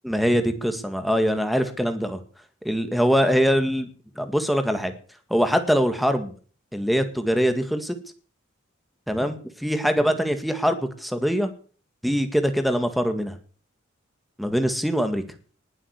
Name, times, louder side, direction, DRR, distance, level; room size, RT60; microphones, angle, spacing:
voice 1, 0.0-2.2 2.7-3.9 4.2-4.9 5.3-6.3 6.7-7.9 9.1-11.5 12.0-13.4 14.4-15.2, equal, ahead, 8 dB, 1.9 m, -23 dB
20.0 x 7.6 x 8.1 m, 0.43 s
head